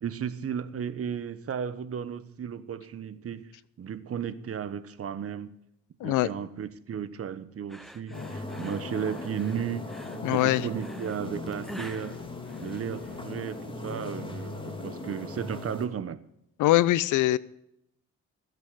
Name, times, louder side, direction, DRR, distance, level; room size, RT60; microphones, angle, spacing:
voice 1, 0.0-3.5 3.8-5.6 6.0-9.9 10.3-12.2 12.6-16.2, right 8 dB, 50° right, 1.2 m, -34 dB
sound 1, 7.7-13.2, equal, ahead, 1.2 m, -47 dB
sound 2, 8.1-15.6, left 4 dB, 65° left, 3.0 m, -41 dB
sound 3, 8.1-15.9, left 1 dB, 15° left, 2.7 m, -41 dB
voice 2, 10.2-10.6 16.6-17.4, left 16 dB, 85° left, 0.7 m, -22 dB
15.5 x 8.1 x 6.8 m
cardioid pair, 90°, 30 cm